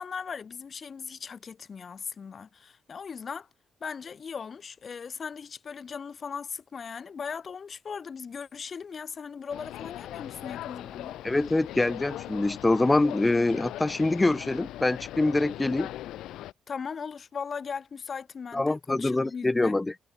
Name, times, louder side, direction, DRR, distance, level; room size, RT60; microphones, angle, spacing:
voice 1, 0.0-3.5 3.8-11.1 16.7-19.7, left 6 dB, 45° left, 1.5 m, -38 dB
sound 1, 9.5-16.5, left 14 dB, 85° left, 0.9 m, -40 dB
voice 2, 11.2-15.9 18.5-19.9, left 2 dB, 15° left, 0.8 m, -25 dB
cardioid pair, 90°, 0 cm